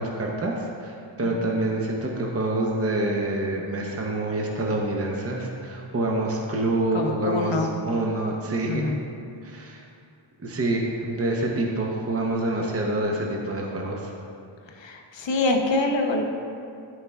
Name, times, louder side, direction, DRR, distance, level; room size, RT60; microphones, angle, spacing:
voice 1, 0.0-8.8 9.4-9.8 10.4-14.1, right 2 dB, 30° right, -1 dB, 0.8 m, -27 dB
voice 2, 6.9-7.7 8.7-9.0 14.7-16.2, left 2 dB, 60° left, 2 dB, 0.9 m, -25 dB
12.5 x 4.7 x 2.4 m, 2.5 s
wide cardioid pair, 85°, 50 cm